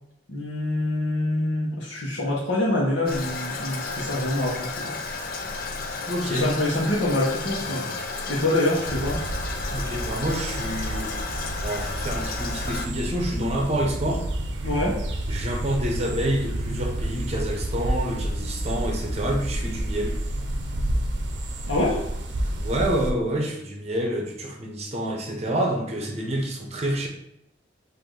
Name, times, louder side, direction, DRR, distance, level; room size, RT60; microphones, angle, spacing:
voice 1, 0.3-4.9 6.3-7.9 8.3-9.2 14.6-15.0 21.7-22.0, left 1 dB, 85° left, -4 dB, 1.0 m, -25 dB
Toilet flush, 3.1-12.9, left 4 dB, 50° left, 0.5 m, -33 dB
voice 2, 6.1-6.5 9.7-14.2 15.3-20.2 22.5-27.1, right 1 dB, 35° right, 1 dB, 0.8 m, -28 dB
sound 1, 8.8-23.1, right 1 dB, 75° right, 0.6 m, -30 dB
5.0 x 2.6 x 3.8 m, 0.79 s
head